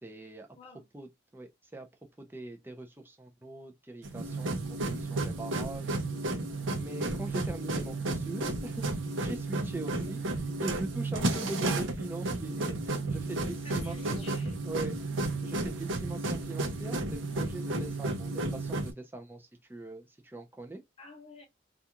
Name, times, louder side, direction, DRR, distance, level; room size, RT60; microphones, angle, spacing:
voice 1, 0.0-0.5 0.9-1.9 2.2-4.6 5.0-5.9 6.7-8.9 9.2-10.2 10.6-14.2 14.6-14.9 15.4-20.8, right 2 dB, 10° right, 0.5 m, -41 dB
sound 1, 4.0-18.9, right 2 dB, 75° right, 0.6 m, -32 dB
voice 2, 9.8-10.1 11.3-11.7 13.6-14.9 21.0-21.5, left 3 dB, 30° left, 0.8 m, -49 dB
2.4 x 2.3 x 2.8 m
head